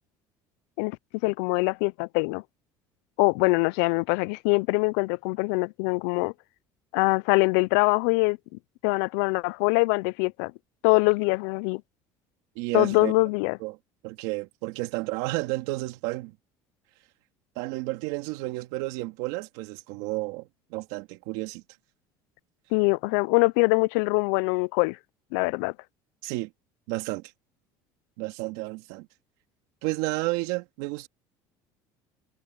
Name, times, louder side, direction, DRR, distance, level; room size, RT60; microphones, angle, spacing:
voice 1, 1.2-2.4 3.2-6.3 6.9-8.4 8.8-10.5 10.8-11.8 12.7-13.6 22.7-25.0 25.3-25.7, left 28 dB, 85° left, 0.4 m, -23 dB
voice 2, 12.5-13.1 13.6-13.8 14.0-16.4 17.6-21.6 26.2-26.5 26.9-27.3 28.2-29.1 29.8-31.1, right 21 dB, 80° right, 2.5 m, -31 dB
supercardioid pair, 115°, 9 cm